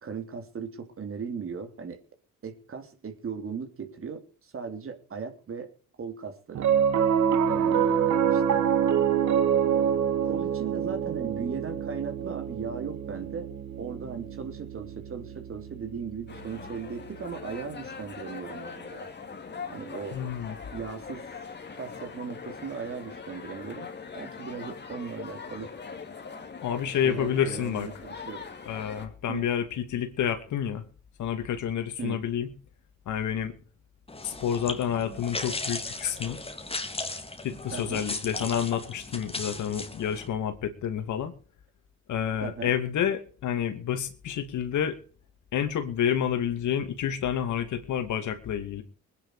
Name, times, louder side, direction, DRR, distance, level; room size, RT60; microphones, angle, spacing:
voice 1, 0.0-2.0 2.4-5.7 6.0-6.7 7.4-8.7 9.8-9.9 10.2-13.5 13.8-19.1 19.7-20.2 20.7-21.3 21.7-23.9 24.1-25.7 26.9-28.4 29.3-29.5 32.0-32.2 37.7-38.1 42.4-42.7, right 6 dB, 45° right, 6 dB, 3.7 m, -37 dB
Piano, 6.5-17.0, right 8 dB, 70° right, 1.9 m, -26 dB
sound 1, 16.3-29.1, left 5 dB, 35° left, 3.1 m, -42 dB
voice 2, 20.1-20.5 26.6-27.9 28.7-30.8 31.2-32.5 33.1-33.5 34.2-36.4 37.4-41.3 42.1-45.0 45.5-48.8, left 9 dB, 75° left, 9 dB, 2.6 m, -29 dB
sound 2, 34.1-40.3, left 2 dB, 20° left, 3.1 m, -36 dB
20.5 x 10.0 x 5.0 m, 0.40 s
cardioid pair, 90°, 30 cm